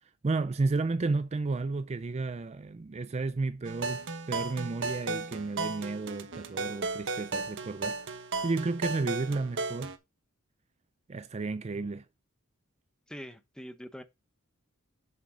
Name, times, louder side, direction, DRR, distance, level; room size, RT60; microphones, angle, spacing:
voice 1, 0.2-4.0 4.3-9.9 11.1-12.0, right 3 dB, 30° right, 0.4 m, -32 dB
sound 1, 3.7-10.0, right 3 dB, 60° right, 1.2 m, -35 dB
voice 2, 13.1-14.0, equal, 5° left, 0.9 m, -43 dB
7.7 x 7.2 x 3.8 m
head